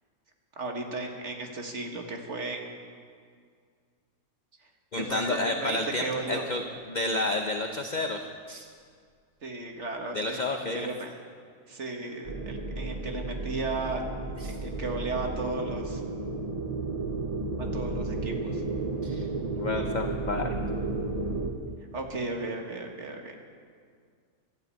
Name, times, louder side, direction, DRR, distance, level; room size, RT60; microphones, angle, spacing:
voice 1, 0.6-2.7 5.0-6.4 9.4-11.1 11.7-14.0 14.4-16.0 17.6-18.6 21.9-23.3, right 3 dB, 55° right, 2 dB, 2.0 m, -35 dB
voice 2, 4.9-8.2 8.5-8.7 10.1-10.9 14.4-14.6 19.0-19.3 19.5-20.5, left 2 dB, 40° left, 4 dB, 0.8 m, -30 dB
Piano, 5.1-5.9, left 1 dB, 70° left, 3.6 m, -41 dB
sound 1, 12.2-21.5, right 3 dB, 30° right, 1.1 m, -32 dB
13.0 x 12.5 x 8.5 m, 2.1 s
omnidirectional pair, 1.5 m